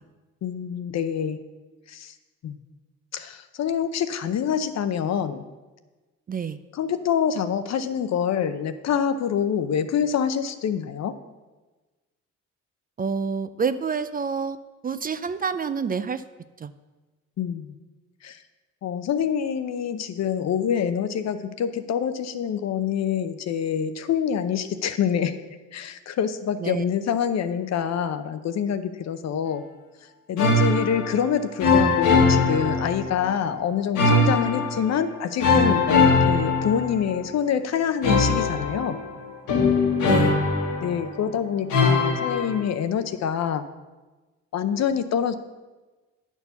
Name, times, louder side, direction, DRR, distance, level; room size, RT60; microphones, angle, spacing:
voice 1, 0.4-1.4 1.9-2.1 2.4-2.5 3.1-5.4 6.7-11.1 17.4-17.7 18.2-18.4 18.8-25.3 25.7-29.6 30.3-39.0 40.8-43.6 44.5-45.3, left 8 dB, 60° left, 10 dB, 0.7 m, -26 dB
voice 2, 13.0-14.6 14.8-16.2 16.6-16.7 26.6-26.8 40.0-40.4, right 5 dB, 30° right, 12 dB, 0.4 m, -27 dB
sound 1, 30.4-31.3 31.6-33.3 33.9-35.0 35.4-37.3 38.0-41.2 41.7-42.6, left 3 dB, 80° left, 1.6 m, -21 dB
9.7 x 4.5 x 7.0 m, 1.2 s
cardioid pair, 90°, 30 cm